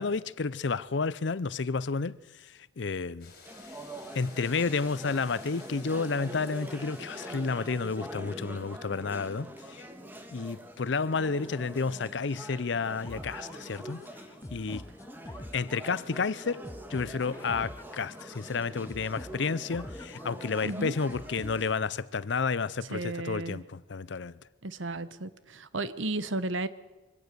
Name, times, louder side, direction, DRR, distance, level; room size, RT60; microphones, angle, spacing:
voice 1, 0.0-2.2 2.4-3.3 4.1-9.9 10.3-14.0 14.5-14.8 15.5-16.6 16.9-24.3, left 4 dB, 65° left, 0.6 m, -31 dB
sound 1, 3.2-8.4, left 4 dB, 50° left, 4.8 m, -54 dB
sound 2, 3.4-21.7, equal, 10° right, 1.7 m, -44 dB
sound 3, 13.0-22.0, left 1 dB, 15° left, 0.6 m, -46 dB
voice 2, 20.6-20.9 22.9-23.6 24.6-26.7, right 2 dB, 80° right, 1.1 m, -34 dB
24.0 x 17.0 x 6.8 m
head